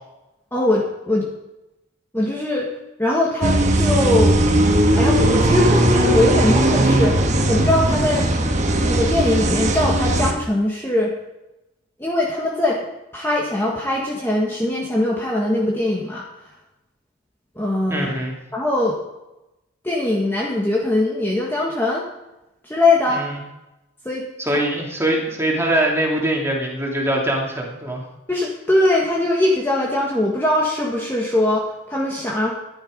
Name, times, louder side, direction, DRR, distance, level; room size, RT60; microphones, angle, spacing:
voice 1, 0.5-1.3 2.1-2.7 3.0-4.4 4.9-7.2 7.5-8.3 8.8-11.1 12.0-12.8 13.1-16.2 17.5-18.1 18.5-19.0 19.8-22.1 22.6-23.2 24.0-24.2 24.5-24.6 28.3-32.5, left 1 dB, 10° left, -3 dB, 1.5 m, -21 dB
sound 1, 3.4-10.3, right 1 dB, 35° right, 1.3 m, -18 dB
voice 2, 17.9-18.3 23.1-23.4 24.4-28.1, right 1 dB, 15° right, -1 dB, 2.6 m, -22 dB
13.5 x 10.5 x 5.1 m, 0.96 s
head